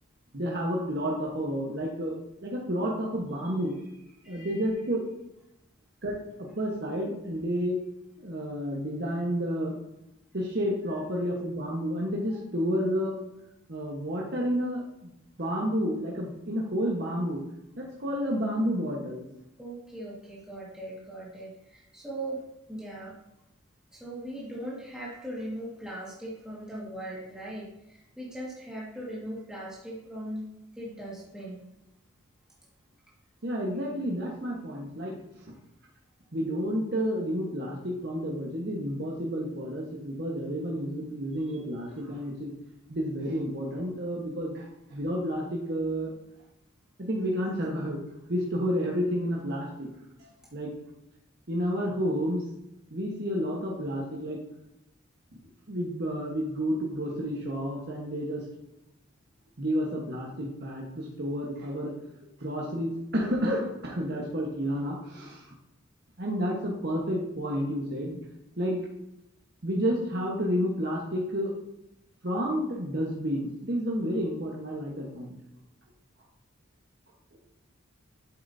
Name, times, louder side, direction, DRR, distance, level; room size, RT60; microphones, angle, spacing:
voice 1, 0.3-2.1 2.4-3.8 4.2-5.0 6.0-7.8 8.2-9.8 10.3-13.2 13.7-15.1 15.4-17.4 17.8-19.2 33.4-35.1 36.3-42.5 42.9-46.1 47.0-48.0 48.3-49.9 50.2-50.7 51.5-52.4 52.9-54.4 55.7-58.4 59.6-61.9 62.2-65.5 66.2-68.2 68.6-68.8 69.6-71.5 72.2-75.3, equal, 55° right, -3 dB, 1.2 m, -30 dB
voice 2, 4.2-4.6 19.6-22.4 22.7-23.1 23.9-30.5 30.8-31.7 41.5-41.6, right 1 dB, 5° right, -6 dB, 1.8 m, -39 dB
8.7 x 7.7 x 2.7 m, 0.87 s
head